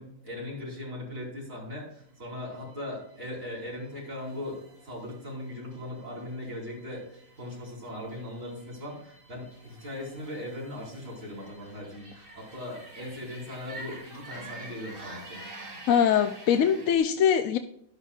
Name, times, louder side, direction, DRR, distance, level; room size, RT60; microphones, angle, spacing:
voice 1, 0.0-4.6 4.8-15.4, left 1 dB, 65° right, -4 dB, 4.9 m, -39 dB
sound 1, 1.9-17.0, right 2 dB, 40° right, 2.0 m, -48 dB
voice 2, 15.9-17.6, left 8 dB, 70° left, 7 dB, 1.0 m, -22 dB
13.0 x 11.5 x 2.4 m, 0.75 s
omnidirectional pair, 1.5 m